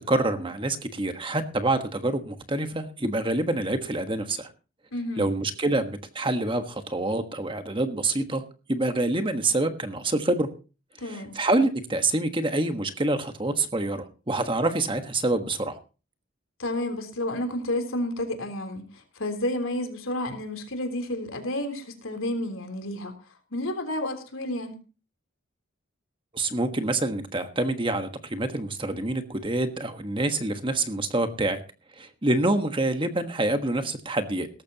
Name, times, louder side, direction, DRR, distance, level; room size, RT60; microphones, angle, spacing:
voice 1, 0.1-4.5 5.2-8.4 8.7-10.5 11.0-15.8 26.3-31.6 32.0-34.5, right 2 dB, 25° right, 7 dB, 1.4 m, -26 dB
voice 2, 4.9-5.3 11.0-11.4 16.6-23.1 23.5-24.8, left 1 dB, 75° left, 6 dB, 3.4 m, -31 dB
18.0 x 14.0 x 2.9 m, 0.34 s
head